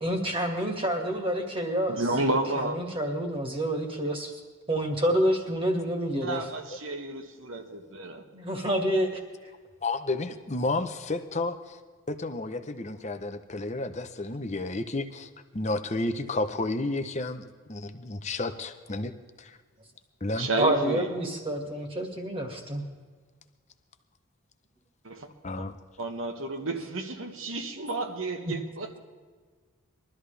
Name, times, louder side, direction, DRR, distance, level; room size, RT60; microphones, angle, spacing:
voice 1, 0.0-2.0 2.6-4.4 4.7-6.4 8.3-9.1 20.6-22.9 28.5-28.6, equal, 25° right, 2.0 m, -28 dB
voice 2, 1.9-2.8 6.2-8.2 20.4-21.1 25.0-25.3 25.6-25.7 26.0-28.9, right 2 dB, 70° right, 1.5 m, -31 dB
voice 3, 9.8-11.8 12.1-19.6 20.2-20.5 25.4-25.8, left 2 dB, 30° left, 0.8 m, -32 dB
22.0 x 13.0 x 3.4 m
head